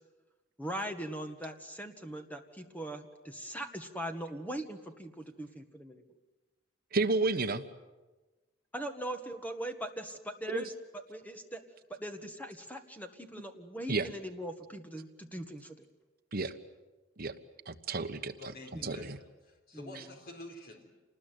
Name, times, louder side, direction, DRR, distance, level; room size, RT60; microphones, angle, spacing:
voice 1, 0.6-6.0 8.7-10.7 11.1-11.6 11.9-15.8 18.7-18.9 19.7-20.1, right 1 dB, 10° left, 6 dB, 1.7 m, -40 dB
voice 2, 6.9-7.6 10.5-10.6 13.9-14.1 16.3-16.5 17.2-17.3 17.7-18.3 18.8-19.2, right 3 dB, 45° right, 7 dB, 1.3 m, -31 dB
voice 3, 18.4-19.1 19.4-20.9, left 2 dB, 45° left, 3 dB, 4.2 m, -48 dB
28.0 x 20.0 x 9.3 m, 1.2 s
head